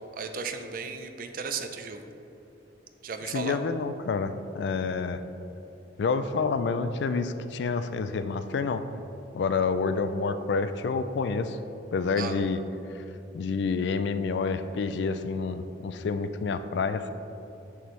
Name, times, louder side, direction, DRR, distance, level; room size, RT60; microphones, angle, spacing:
voice 1, 0.1-2.1 3.0-3.6 12.2-12.3, right 5 dB, 50° right, 7 dB, 0.4 m, -35 dB
voice 2, 3.2-5.2 6.0-8.8 9.3-11.6 11.9-12.6 12.9-13.0 13.3-17.1, left 4 dB, 70° left, 11 dB, 0.3 m, -28 dB
6.6 x 6.2 x 3.1 m, 3.0 s
head